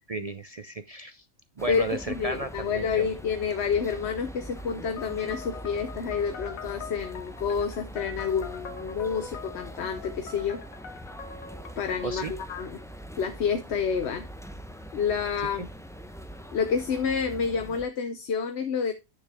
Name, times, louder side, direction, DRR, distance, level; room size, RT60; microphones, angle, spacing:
voice 1, 0.1-1.2 1.6-3.1 12.0-12.3 15.6-15.7, right 3 dB, 50° right, 0.4 m, -34 dB
sound 1, 1.6-17.9, equal, 5° left, 0.6 m, -43 dB
voice 2, 1.7-10.6 11.8-12.8 13.2-14.3 14.9-15.6 16.5-18.9, left 6 dB, 55° left, 1.1 m, -29 dB
sound 2, 5.0-12.4, left 6 dB, 75° left, 1.7 m, -43 dB
9.7 x 6.8 x 3.5 m
omnidirectional pair, 1.4 m